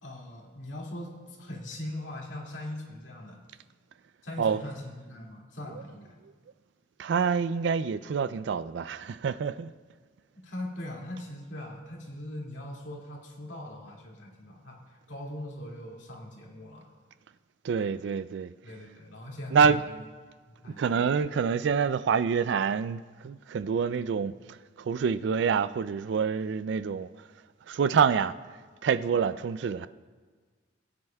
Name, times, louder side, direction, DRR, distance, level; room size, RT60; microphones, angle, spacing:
voice 1, 0.0-3.4 4.2-6.1 10.4-14.8 15.1-16.9 17.8-17.9 18.6-20.0 20.5-21.2, left 1 dB, 75° left, 2.3 m, -41 dB
voice 2, 7.0-9.7 17.6-18.5 19.5-19.8 20.7-24.3 24.8-27.1 27.7-28.3 28.8-29.9, right 6 dB, 65° right, 0.3 m, -26 dB
21.0 x 9.7 x 2.3 m
head